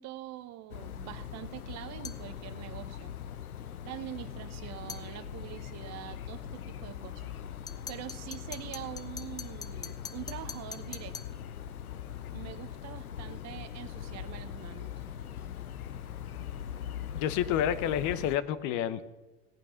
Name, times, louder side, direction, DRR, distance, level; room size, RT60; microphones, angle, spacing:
voice 1, 0.0-3.1 3.8-7.3 7.9-11.4 12.3-14.9, right 14 dB, 40° right, 11 dB, 1.0 m, -44 dB
sound 1, 0.7-18.4, left 9 dB, 85° left, 0.7 m, -41 dB
sound 2, 2.0-2.3 4.9-5.1 7.7-11.4, left 4 dB, 10° left, 0.5 m, -44 dB
voice 2, 17.1-19.0, left 10 dB, 45° left, 15 dB, 0.9 m, -29 dB
17.0 x 8.5 x 5.8 m, 1.1 s
hypercardioid pair, 90°, 42 cm